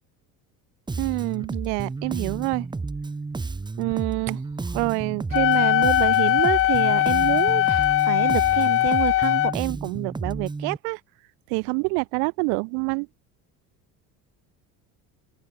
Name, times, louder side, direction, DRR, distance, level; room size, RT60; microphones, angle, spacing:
Bass guitar, 0.9-10.8, right 3 dB, 10° right, 1.0 m, -32 dB
voice 1, 1.0-2.7 3.8-11.0 11.5-13.1, right 40 dB or more, 90° right, 2.3 m, -27 dB
Wind instrument woodwind instrument, 5.3-9.5, left 15 dB, 40° left, 0.4 m, -20 dB
open air
cardioid pair, 120°, 37 cm